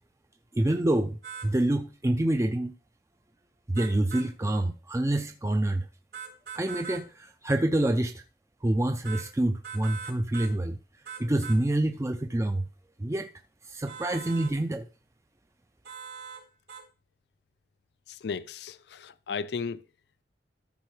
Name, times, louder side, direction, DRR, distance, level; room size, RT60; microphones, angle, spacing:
voice 1, 0.5-1.2 1.4-2.7 3.7-5.9 6.5-8.2 8.6-10.8 11.2-12.6 13.0-13.3 13.6-14.9, right 1 dB, 15° right, 0.4 m, -27 dB
sound 1, 1.2-1.5 3.7-4.3 6.1-7.0 9.0-9.3 9.6-10.5 11.0-11.6 13.9-14.5 15.8-16.4 16.7-16.8, right 7 dB, 65° right, 3.1 m, -41 dB
voice 2, 18.1-19.8, left 5 dB, 70° left, 0.4 m, -35 dB
13.0 x 4.5 x 4.8 m
head